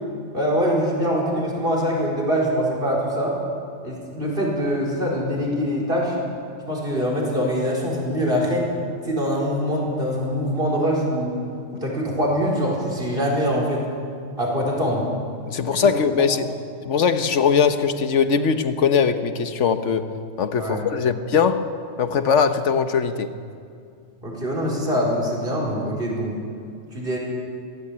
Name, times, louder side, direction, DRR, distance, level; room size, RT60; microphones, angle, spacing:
voice 1, 0.3-3.4 3.8-6.1 6.7-8.7 9.0-11.4 11.8-13.8 14.4-15.0 15.6-15.9 20.6-20.8 24.2-26.4 26.9-27.2, equal, 50° right, -3 dB, 5.0 m, -23 dB
voice 2, 15.5-16.4 16.9-20.1 20.4-21.7 22.0-23.3, left 6 dB, 75° left, 9 dB, 1.4 m, -20 dB
22.5 x 17.0 x 8.7 m, 2.3 s
omnidirectional pair, 1.2 m